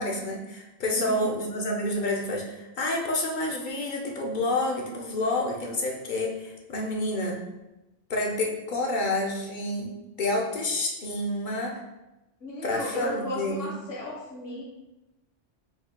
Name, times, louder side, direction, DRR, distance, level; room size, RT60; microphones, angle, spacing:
voice 1, 0.0-7.4 8.1-11.8 12.6-13.7, left 1 dB, 50° left, 0 dB, 0.7 m, -29 dB
voice 2, 0.8-1.3 12.4-14.6, equal, 80° left, -4 dB, 1.5 m, -34 dB
4.5 x 3.5 x 2.2 m, 0.97 s
omnidirectional pair, 1.2 m